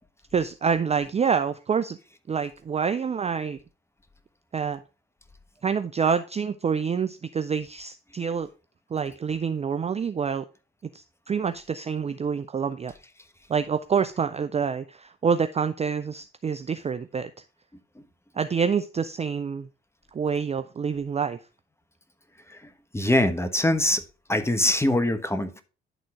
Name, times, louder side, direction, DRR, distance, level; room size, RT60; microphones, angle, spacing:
voice 1, 0.3-2.0 2.3-3.6 4.5-4.8 5.6-8.5 8.9-10.5 10.9-12.9 13.5-17.4 18.4-19.7 20.1-21.4, right 6 dB, 20° right, 10 dB, 0.5 m, -27 dB
voice 2, 22.9-24.0 24.3-25.6, left 1 dB, 10° left, 9 dB, 1.2 m, -23 dB
11.0 x 3.8 x 4.6 m, 0.33 s
hypercardioid pair, 50°, 29 cm